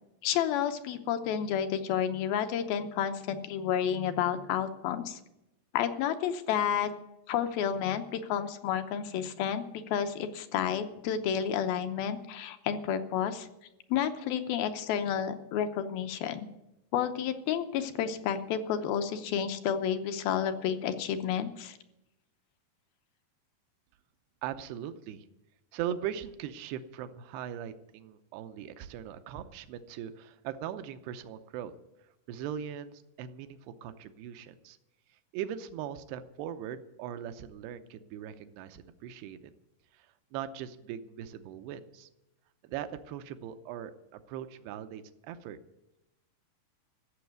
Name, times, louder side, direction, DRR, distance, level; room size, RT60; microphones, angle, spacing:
voice 1, 0.2-5.2 5.7-6.9 7.3-13.5 13.9-16.5 16.9-21.8, left 9 dB, 75° left, 8 dB, 2.4 m, -30 dB
voice 2, 24.4-25.3 25.7-31.7 32.3-34.8 35.1-39.5 39.9-42.1 42.6-45.6, right 9 dB, 85° right, 10 dB, 2.8 m, -40 dB
15.0 x 7.2 x 9.3 m, 0.91 s
omnidirectional pair, 4.6 m